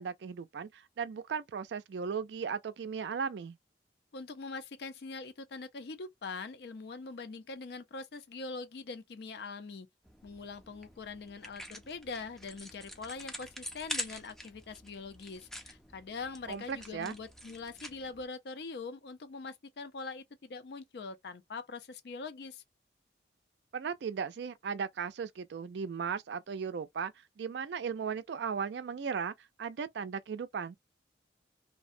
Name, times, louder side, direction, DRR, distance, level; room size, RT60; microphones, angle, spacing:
voice 1, 0.0-3.6 16.5-17.1 23.7-30.8, right 6 dB, 75° right, 0.4 m, -37 dB
voice 2, 4.1-9.9 10.2-22.6, left 4 dB, 65° left, 0.4 m, -43 dB
sound 1, 10.0-18.3, left 1 dB, ahead, 0.4 m, -45 dB
2.6 x 2.1 x 2.5 m
head